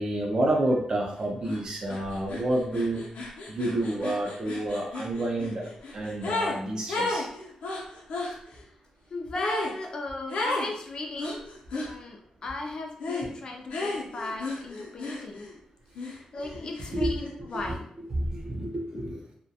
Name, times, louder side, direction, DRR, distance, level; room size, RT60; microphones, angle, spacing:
voice 1, 0.0-3.1 3.5-7.3 16.9-17.1 17.5-17.8 18.1-19.2, right 1 dB, 35° right, 0 dB, 0.5 m, -29 dB
sound 1, 1.4-1.6 1.9-6.6 6.9-8.3 9.3-9.7 10.3-10.7 11.2-11.9 13.0-13.3 13.7-15.6 15.9-17.3, left 2 dB, 85° left, 0.6 m, -33 dB
voice 2, 9.1-15.5 16.0-17.9 18.9-19.2, left 2 dB, 40° left, 1 dB, 0.3 m, -37 dB
2.3 x 2.1 x 2.7 m, 0.66 s
wide cardioid pair, 180°, 2 cm